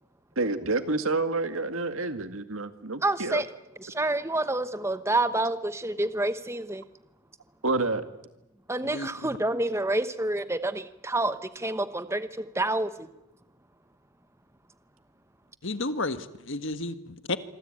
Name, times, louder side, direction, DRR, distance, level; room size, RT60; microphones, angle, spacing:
voice 1, 0.4-3.4 7.6-8.1, right 3 dB, 65° right, 9 dB, 2.1 m, -28 dB
voice 2, 3.0-3.4 3.9-6.8 8.7-12.9, right 2 dB, 10° right, 12 dB, 1.1 m, -28 dB
voice 3, 8.8-9.4 15.6-17.4, left 2 dB, 55° left, 11 dB, 1.5 m, -32 dB
26.5 x 24.0 x 9.0 m, 0.92 s
head